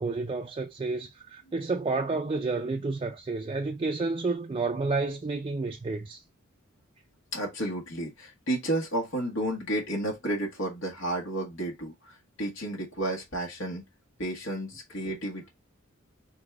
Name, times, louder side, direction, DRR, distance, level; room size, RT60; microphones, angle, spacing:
voice 1, 0.0-6.2, right 3 dB, 25° right, 0.4 m, -30 dB
voice 2, 7.3-13.8 14.2-15.5, right 1 dB, 65° left, 1.4 m, -32 dB
4.0 x 3.5 x 3.5 m
head